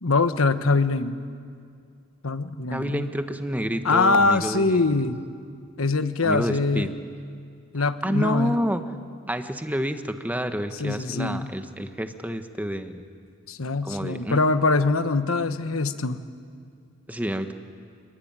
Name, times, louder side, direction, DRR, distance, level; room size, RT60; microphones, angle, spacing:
voice 1, 0.0-1.2 2.2-3.0 3.8-5.2 5.8-6.9 7.7-8.6 10.8-11.5 13.5-16.2, left 3 dB, 80° left, 10 dB, 1.3 m, -23 dB
voice 2, 2.7-5.0 6.2-6.9 7.7-8.8 9.3-13.1 13.8-14.4 17.1-17.5, equal, 10° right, 8 dB, 1.2 m, -29 dB
28.5 x 21.5 x 9.0 m, 2.3 s
head